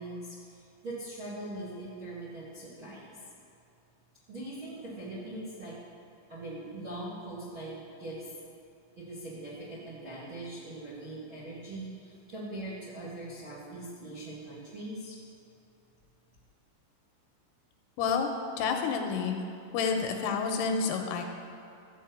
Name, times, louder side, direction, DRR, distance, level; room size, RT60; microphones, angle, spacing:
voice 1, 0.0-3.2 4.3-5.8 6.3-8.3 8.9-15.1, right 1 dB, 50° right, -8 dB, 1.5 m, -41 dB
voice 2, 18.0-18.3 18.6-19.5 19.7-21.2, left 5 dB, 85° left, 3 dB, 3.3 m, -29 dB
13.5 x 5.4 x 8.2 m, 2.6 s
omnidirectional pair, 5.9 m